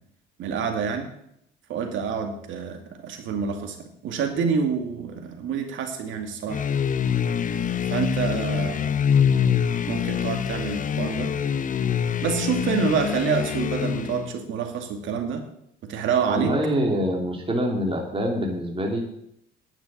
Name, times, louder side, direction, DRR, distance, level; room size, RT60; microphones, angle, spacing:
voice 1, 0.4-1.1 1.7-6.6 7.9-8.9 9.9-11.4 12.2-15.4 15.8-16.5, right 6 dB, 70° right, 5 dB, 2.5 m, -27 dB
sound 1, 6.5-14.3, left 8 dB, 40° left, 0.8 m, -25 dB
voice 2, 16.3-19.0, equal, 25° right, 1 dB, 3.0 m, -25 dB
10.0 x 7.5 x 8.7 m, 0.76 s
supercardioid pair, 75°, 21 cm